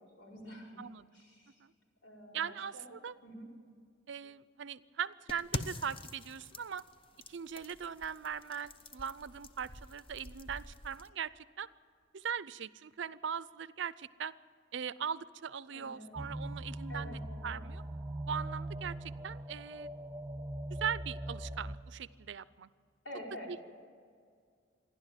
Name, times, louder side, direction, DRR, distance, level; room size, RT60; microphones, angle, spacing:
voice 1, 0.0-0.8 1.1-1.6 2.0-2.9 3.2-3.5 15.7-16.1 16.9-17.6 23.0-23.5, equal, 80° left, -1 dB, 4.9 m, -48 dB
voice 2, 2.3-3.2 4.1-6.8 7.3-11.7 12.1-14.3 14.7-17.8 18.3-19.9 20.7-22.7 23.5-23.6, right 7 dB, 65° right, 17 dB, 0.5 m, -40 dB
sound 1, 5.3-11.1, left 2 dB, 30° left, 0.8 m, -45 dB
sound 2, 16.2-21.8, right 1 dB, 10° right, 1.2 m, -41 dB
27.5 x 11.5 x 9.0 m, 2.1 s
head